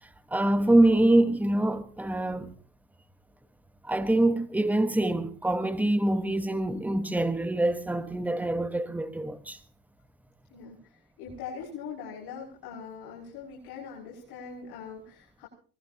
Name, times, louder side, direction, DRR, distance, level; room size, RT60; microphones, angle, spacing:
voice 1, 0.3-2.5 3.8-9.6, right 1 dB, 5° right, 1.3 m, -25 dB
voice 2, 10.5-15.5, left 6 dB, 60° left, 6.3 m, -42 dB
24.0 x 19.5 x 2.9 m
supercardioid pair, 90°, 44 cm